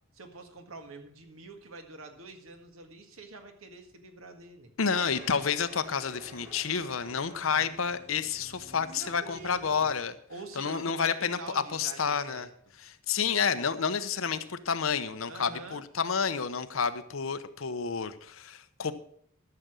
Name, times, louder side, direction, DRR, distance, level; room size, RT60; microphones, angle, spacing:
voice 1, 0.1-4.7 8.9-9.9 10.3-12.5 15.3-15.8, right 3 dB, 90° right, 1.8 m, -46 dB
voice 2, 4.8-10.1 10.5-12.5 12.8-18.9, left 6 dB, 75° left, 0.8 m, -30 dB
sound 1, 4.9-9.9, equal, 15° right, 3.1 m, -51 dB
13.0 x 6.8 x 6.3 m
head